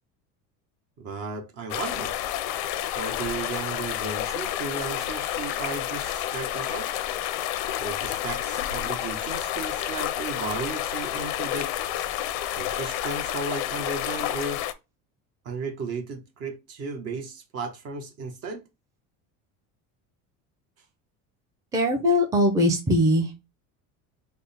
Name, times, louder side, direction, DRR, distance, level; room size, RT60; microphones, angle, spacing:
voice 1, 1.0-2.1 3.0-6.9 7.8-11.7 12.6-14.6 15.4-18.6, right 3 dB, 45° right, 0.8 m, -35 dB
sound 1, 1.7-14.7, left 12 dB, 90° left, 0.5 m, -30 dB
voice 2, 21.7-23.4, left 1 dB, 10° right, 0.5 m, -21 dB
3.5 x 2.1 x 4.0 m
cardioid pair, 140°, 34 cm